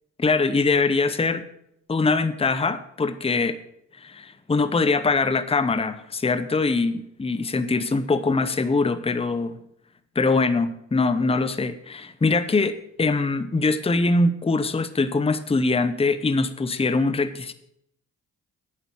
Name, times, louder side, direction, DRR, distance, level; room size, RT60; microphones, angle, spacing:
voice 1, 0.2-1.4 1.9-3.6 4.0-9.6 10.1-17.5, left 3 dB, 15° left, 13 dB, 0.7 m, -23 dB
9.0 x 6.7 x 6.2 m, 0.76 s
hypercardioid pair, 45°, 38 cm